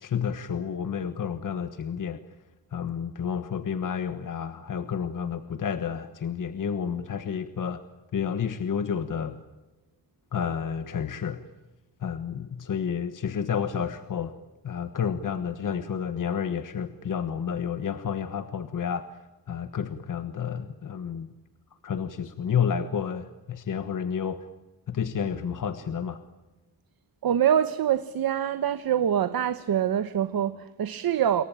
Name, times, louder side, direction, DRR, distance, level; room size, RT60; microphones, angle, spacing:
voice 1, 0.0-2.2 2.7-7.8 8.1-9.4 10.3-11.4 12.0-14.3 14.6-19.1 19.5-21.3 21.8-24.4 24.9-26.2, left 7 dB, 60° left, 1.4 m, -30 dB
voice 2, 27.2-31.4, right 9 dB, 75° right, 1.2 m, -25 dB
27.5 x 23.0 x 8.9 m
wide cardioid pair, 170°, 36 cm